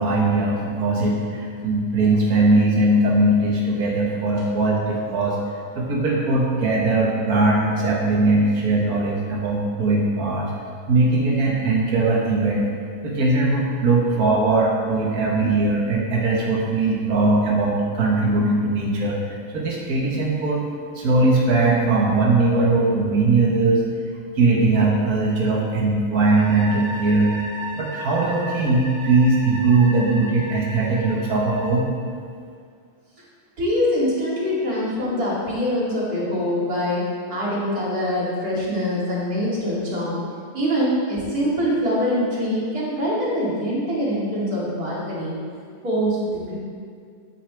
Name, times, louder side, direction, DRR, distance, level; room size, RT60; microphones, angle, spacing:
voice 1, 0.0-5.4 5.7-10.5 10.9-12.7 13.0-20.6 20.9-23.8 24.3-27.3 27.7-31.9, right 2 dB, 70° right, -3 dB, 0.8 m, -20 dB
sound 1, 26.3-31.8, equal, 80° left, 3.6 m, -35 dB
voice 2, 33.6-40.2 40.5-45.4 45.8-46.5, equal, 30° right, -8 dB, 3.0 m, -24 dB
12.5 x 9.0 x 3.4 m, 2.2 s
omnidirectional pair, 3.6 m